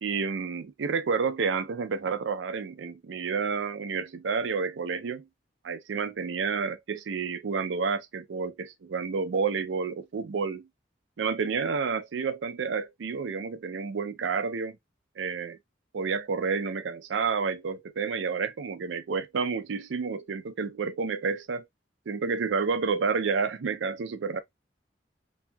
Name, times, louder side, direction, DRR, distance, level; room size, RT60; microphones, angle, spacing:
voice 1, 0.0-5.3 5.6-10.7 11.2-14.8 15.2-15.6 15.9-21.6 22.1-24.4, right 5 dB, 80° right, 0.4 m, -30 dB
2.8 x 2.6 x 2.2 m
head